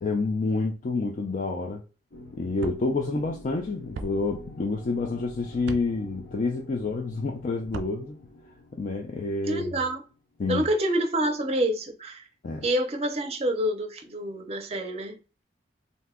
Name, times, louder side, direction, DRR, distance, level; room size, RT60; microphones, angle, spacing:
voice 1, 0.0-1.8 2.3-8.2 8.7-9.8 10.4-10.7 12.4-12.7, left 3 dB, 45° left, 0.4 m, -28 dB
sound 1, 2.1-10.6, left 1 dB, 65° left, 0.7 m, -47 dB
sound 2, 2.6-2.8 3.9-4.1 5.6-5.8 7.6-7.9, right 3 dB, 90° right, 0.4 m, -36 dB
voice 2, 9.4-10.0 10.5-12.2 12.6-15.2, right 1 dB, 35° right, 0.5 m, -27 dB
2.6 x 2.2 x 3.5 m
head